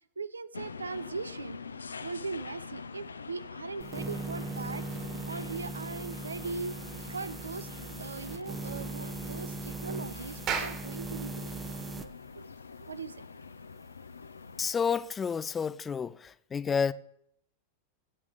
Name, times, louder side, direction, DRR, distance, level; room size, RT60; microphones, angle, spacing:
voice 1, 0.2-1.6 2.0-4.9 5.2-6.8 7.1-7.7 8.0-11.6 11.9-12.5 12.8-13.2, right 4 dB, 75° right, 0.5 m, -39 dB
sound 1, 0.5-14.7, left 5 dB, 75° left, 0.6 m, -45 dB
sound 2, 3.8-12.1, right 3 dB, 15° right, 0.8 m, -39 dB
Clapping, 10.5-15.1, right 7 dB, 35° right, 2.4 m, -39 dB
voice 2, 14.6-16.1 16.5-16.9, left 6 dB, 20° left, 0.5 m, -29 dB
21.0 x 8.5 x 3.5 m
figure-of-eight pair, 90°, 0 cm